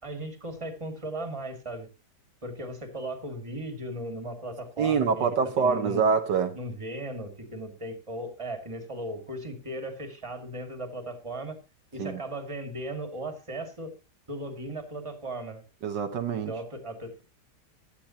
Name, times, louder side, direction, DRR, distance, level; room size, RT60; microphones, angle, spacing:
voice 1, 0.0-1.9 2.4-6.0 6.5-11.6 11.9-13.9 14.3-15.6 16.5-17.2, right 1 dB, 15° right, 2.4 m, -37 dB
voice 2, 4.8-6.6 12.0-12.2 15.8-16.5, right 6 dB, 80° right, 1.9 m, -25 dB
15.5 x 11.5 x 2.9 m
omnidirectional pair, 1.9 m